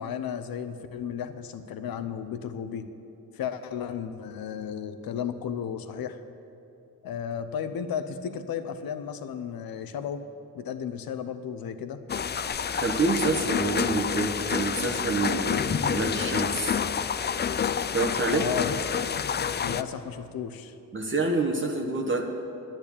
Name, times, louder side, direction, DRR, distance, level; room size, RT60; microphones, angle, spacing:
voice 1, 0.0-2.9 3.3-6.2 7.0-10.3 10.5-12.0 18.3-18.7 19.6-20.7, left 8 dB, 80° left, 10 dB, 0.8 m, -34 dB
sound 1, 12.1-19.8, left 7 dB, 30° left, 0.4 m, -28 dB
voice 2, 12.7-16.8 17.9-18.4 20.9-22.2, right 3 dB, 35° right, 1 dB, 1.2 m, -27 dB
10.5 x 8.8 x 8.5 m, 2.7 s
cardioid pair, 70°, 35 cm